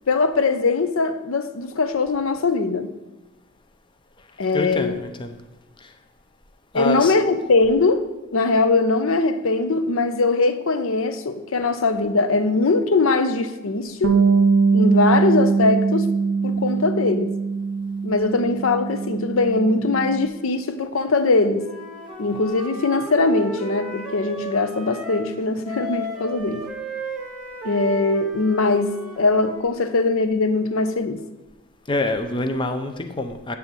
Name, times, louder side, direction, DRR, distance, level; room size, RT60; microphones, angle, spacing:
voice 1, 0.1-2.9 4.4-5.0 6.7-14.2 14.7-16.1 16.4-17.3 18.0-21.7 22.2-26.6 27.6-31.2, left 3 dB, 70° left, 0.6 m, -21 dB
voice 2, 4.5-5.4 5.8-5.9 6.7-7.1 31.9-33.6, left 2 dB, 20° left, 0.5 m, -26 dB
Bass guitar, 14.0-20.3, right 4 dB, 55° right, 0.4 m, -21 dB
Wind instrument woodwind instrument, 21.6-25.3 25.6-29.7, right 1 dB, 5° right, 1.1 m, -35 dB
8.9 x 3.4 x 6.7 m
head